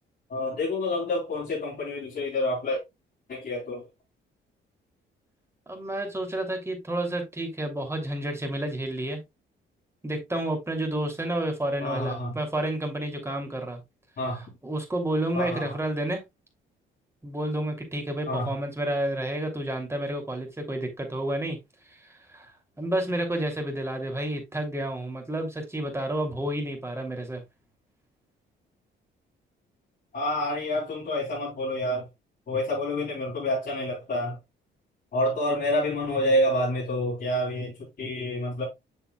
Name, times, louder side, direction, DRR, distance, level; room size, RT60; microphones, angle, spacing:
voice 1, 0.3-2.8 3.3-3.8 11.8-12.4 14.2-14.4 15.3-15.7 18.3-18.5 30.1-32.1 32.5-34.4 35.1-38.6, left 1 dB, 50° left, 3.9 m, -28 dB
voice 2, 5.7-9.2 10.0-13.8 14.6-16.2 17.2-21.6 22.1-22.5 22.8-27.4, right 1 dB, 15° right, 2.9 m, -30 dB
7.5 x 6.8 x 2.3 m
cardioid pair, 90°, 20 cm